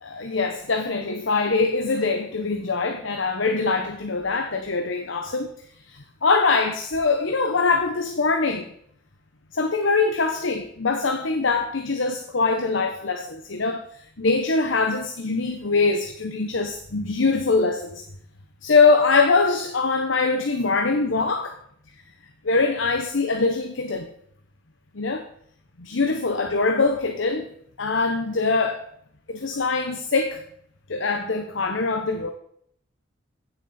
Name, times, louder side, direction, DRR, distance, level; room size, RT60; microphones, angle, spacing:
voice 1, 0.0-5.5 5.9-8.7 9.5-13.8 14.2-18.0 18.6-21.6 22.4-24.1 24.9-25.3 25.8-27.5 27.8-28.8 29.3-30.4 30.9-32.3, left 4 dB, 75° left, 6 dB, 0.9 m, -23 dB
15.0 x 7.5 x 4.2 m, 0.67 s
head